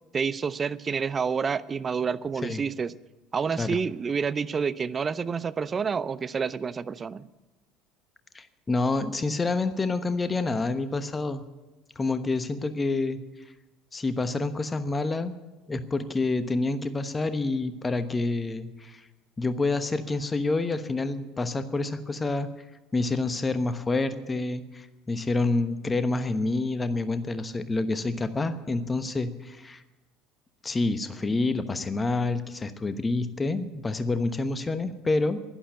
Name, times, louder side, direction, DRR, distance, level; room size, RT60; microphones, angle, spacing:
voice 1, 0.1-2.9 3.3-7.2, right 6 dB, 30° right, 16 dB, 0.6 m, -28 dB
voice 2, 8.3-11.4 12.0-13.2 13.9-15.4 15.7-19.0 19.4-22.5 22.9-29.8 30.6-35.4, left 3 dB, 20° left, 11 dB, 1.1 m, -28 dB
11.5 x 11.5 x 9.4 m, 1.1 s
figure-of-eight pair, 65°, 0 cm